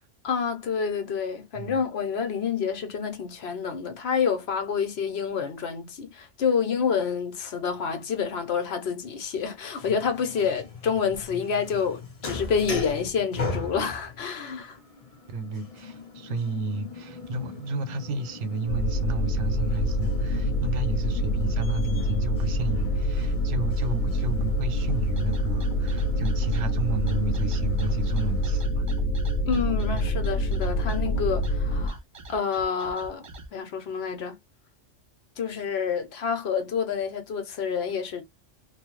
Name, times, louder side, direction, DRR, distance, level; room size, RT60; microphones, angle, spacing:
voice 1, 0.2-14.8 29.5-32.0 32.3-33.3 33.5-34.4 35.4-38.2, left 6 dB, 65° left, 0.9 m, -28 dB
sound 1, 9.8-28.6, left 4 dB, 35° left, 0.7 m, -39 dB
voice 2, 15.3-28.9 29.9-30.0, right 3 dB, 80° right, 1.0 m, -32 dB
sound 2, 18.7-31.9, equal, 85° left, 1.0 m, -26 dB
sound 3, 24.9-33.5, right 2 dB, 45° right, 0.4 m, -45 dB
3.0 x 2.0 x 3.0 m
omnidirectional pair, 1.2 m